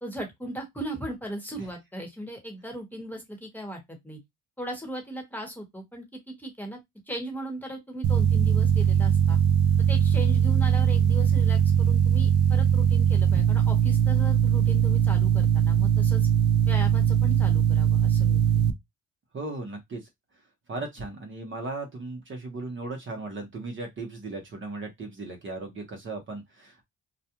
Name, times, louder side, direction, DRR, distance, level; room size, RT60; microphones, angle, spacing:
voice 1, 0.0-4.2 4.6-6.8 7.1-9.4 9.9-16.3 16.7-18.7, right 1 dB, 5° left, 1.1 m, -37 dB
sound 1, 8.0-18.7, right 8 dB, 75° right, 0.5 m, -21 dB
voice 2, 19.3-20.0 20.7-26.8, right 2 dB, 40° right, 0.9 m, -36 dB
2.3 x 2.2 x 2.9 m
cardioid pair, 90°, 30 cm